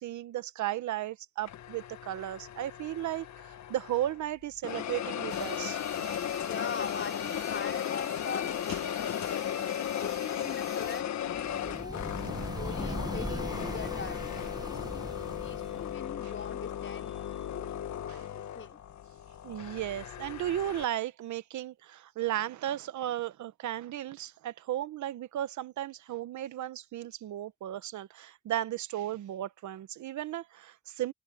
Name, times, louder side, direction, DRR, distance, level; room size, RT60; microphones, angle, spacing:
voice 1, 0.0-6.2 8.7-8.8 18.1-18.3 19.4-31.1, right 12 dB, 75° right, 1.2 m, -35 dB
sound 1, 1.5-4.2 4.6-20.8, left 10 dB, 65° left, 1.6 m, -36 dB
sound 2, 5.3-11.0, right 5 dB, 35° right, 3.6 m, -49 dB
voice 2, 6.4-12.0 12.5-18.8, left 6 dB, 40° left, 4.9 m, -42 dB
sound 3, 11.3-16.0, right 2 dB, 15° right, 1.3 m, -40 dB
cardioid pair, 90°, 30 cm